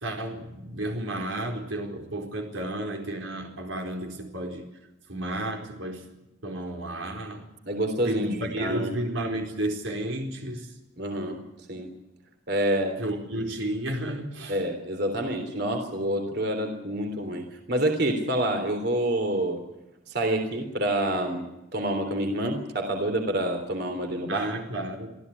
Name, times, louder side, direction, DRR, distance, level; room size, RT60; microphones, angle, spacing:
voice 1, 0.0-4.7 5.1-6.0 6.4-7.4 8.0-10.7 13.0-14.6 24.3-25.1, right 1 dB, 85° right, 3 dB, 4.4 m, -32 dB
voice 2, 7.7-8.3 8.6-8.9 11.0-11.4 11.7-11.9 12.5-12.9 14.5-19.6 20.1-21.5 21.7-24.5, right 1 dB, 55° right, 5 dB, 3.4 m, -27 dB
26.0 x 14.5 x 9.8 m, 0.93 s
head